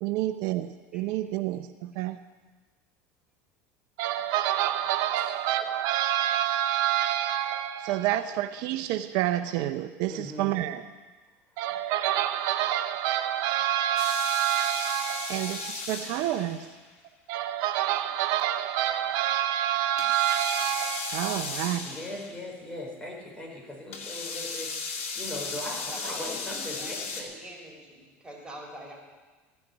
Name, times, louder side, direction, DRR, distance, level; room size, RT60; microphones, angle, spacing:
voice 1, 0.0-2.2 4.0-10.8 11.6-16.7 17.3-21.8, right 12 dB, 65° right, 9 dB, 0.7 m, -28 dB
voice 2, 10.1-10.7 21.3-21.5 21.8-24.7 25.1-27.4, left 1 dB, 15° left, -2 dB, 5.1 m, -39 dB
sound 1, 14.0-16.8 20.0-22.4 23.9-27.2, left 4 dB, 90° left, 2.2 m, -36 dB
voice 3, 25.9-29.0, right 1 dB, 10° right, -2 dB, 5.0 m, -44 dB
15.5 x 6.5 x 9.9 m, 1.3 s
supercardioid pair, 100°, 7 cm